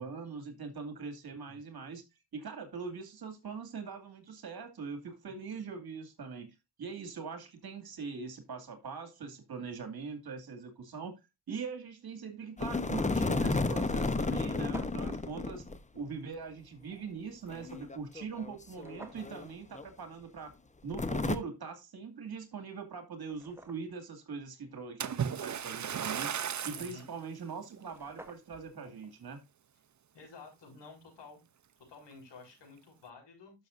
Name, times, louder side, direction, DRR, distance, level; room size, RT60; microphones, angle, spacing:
voice 1, 0.0-2.0 2.3-11.2 11.5-15.6 15.9-20.5 20.8-26.3 26.6-29.4, right 5 dB, 60° right, 2.4 m, -42 dB
sound 1, 12.6-15.8 16.1-16.2 17.5-19.5 19.7-19.8 20.9-21.4, left 3 dB, 15° left, 0.9 m, -32 dB
sound 2, 14.4-15.2 18.7-19.3 22.3-22.4 22.9-24.1 27.4-27.5 27.7-28.7, right 1 dB, 5° right, 1.6 m, -51 dB
Splash splatter, 25.0-27.0 27.7-27.9 28.5-28.6, right 8 dB, 45° right, 0.7 m, -35 dB
voice 2, 26.7-27.1 30.1-31.4 31.9-33.5, left 3 dB, 80° left, 6.3 m, -51 dB
12.0 x 6.7 x 2.6 m
cardioid pair, 80°, 42 cm